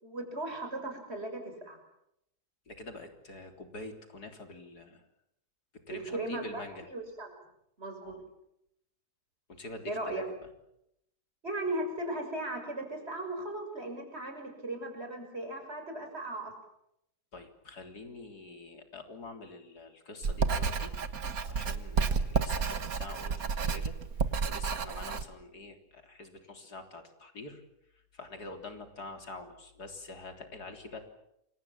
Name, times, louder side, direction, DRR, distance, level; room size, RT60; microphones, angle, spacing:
voice 1, 0.0-1.8 5.9-6.6 6.9-7.3 7.8-8.1 9.9-10.2 11.4-16.5, right 1 dB, 40° right, 4 dB, 6.6 m, -37 dB
voice 2, 2.7-5.0 5.9-6.9 8.0-8.3 9.5-10.5 17.3-20.9 21.5-27.6 27.9-31.0, left 2 dB, 85° left, 5 dB, 4.1 m, -46 dB
Writing, 20.2-25.3, right 5 dB, 65° right, 1.9 m, -31 dB
29.0 x 25.0 x 7.3 m, 0.79 s
omnidirectional pair, 1.7 m